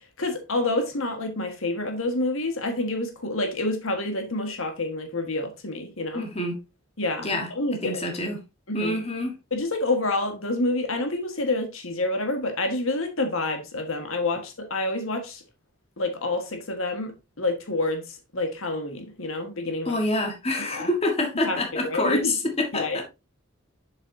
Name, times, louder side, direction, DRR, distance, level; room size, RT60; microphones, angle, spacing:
voice 1, 0.2-6.3 7.0-8.0 8.7-8.9 9.5-15.4 16.0-18.0 18.3-20.0 20.7-20.9 21.4-22.3 22.7-23.0, left 2 dB, 80° left, 1.6 m, -28 dB
voice 2, 6.1-6.6 7.2-8.4 8.7-9.4 19.8-23.0, left 2 dB, 30° left, 1.6 m, -27 dB
7.4 x 7.3 x 2.8 m
head